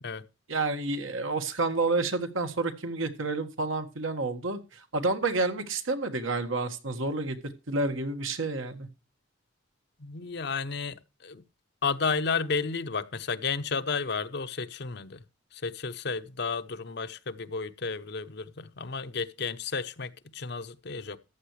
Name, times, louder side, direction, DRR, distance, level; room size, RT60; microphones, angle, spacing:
voice 1, 0.5-8.9, right 3 dB, 80° right, 1.6 m, -29 dB
voice 2, 10.0-11.4 11.8-15.2 15.5-21.2, left 5 dB, 55° left, 0.7 m, -32 dB
14.0 x 9.2 x 3.2 m
head